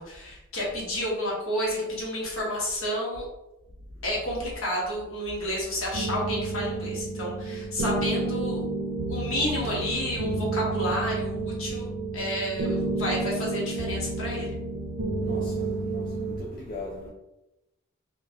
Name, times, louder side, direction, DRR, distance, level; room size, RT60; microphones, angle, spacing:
voice 1, 0.0-3.2 4.0-8.6 9.1-11.9 12.1-14.5, left 1 dB, 70° left, 1.2 m, -30 dB
sound 1, 5.9-16.4, right 3 dB, 85° right, 0.6 m, -30 dB
voice 2, 15.2-17.1, left 2 dB, 40° left, 0.4 m, -40 dB
3.8 x 2.5 x 2.7 m
head